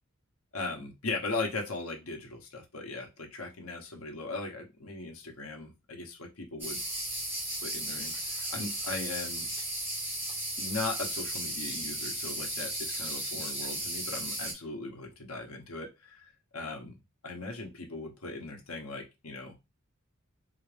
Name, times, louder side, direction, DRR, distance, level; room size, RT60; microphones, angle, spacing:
voice 1, 0.5-6.8 7.6-9.5 10.6-16.2 16.5-19.5, left 3 dB, 90° left, 3 dB, 1.0 m, -38 dB
sound 1, 6.6-14.5, right 1 dB, 10° right, 1.4 m, -35 dB
4.0 x 2.5 x 3.3 m, 0.23 s
head